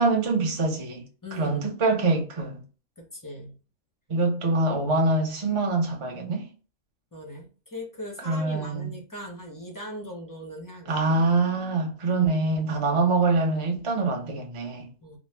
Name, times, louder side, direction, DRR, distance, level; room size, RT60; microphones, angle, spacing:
voice 1, 0.0-1.0 1.3-2.6 4.1-6.5 8.3-8.9 10.9-14.9, right 3 dB, 40° right, 0.4 m, -24 dB
voice 2, 1.2-1.6 3.0-3.6 7.1-11.2 15.0-15.2, left 1 dB, 30° left, 0.4 m, -39 dB
3.0 x 2.0 x 3.2 m
omnidirectional pair, 1.6 m